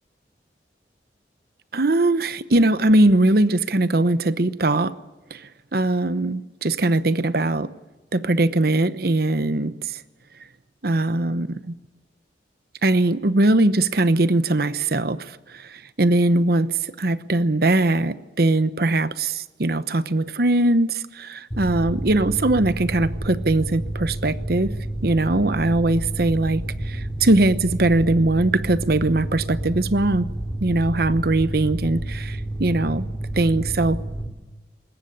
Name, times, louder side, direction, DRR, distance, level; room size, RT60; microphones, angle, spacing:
voice 1, 1.7-4.9 5.3-7.7 8.1-10.0 10.8-11.8 12.8-24.7 25.0-30.3 30.6-33.1 33.3-34.0, right 2 dB, 60° right, 1.0 m, -21 dB
Mechanical fan, 21.5-34.3, right 1 dB, 20° left, 2.6 m, -30 dB
22.5 x 20.0 x 8.6 m
head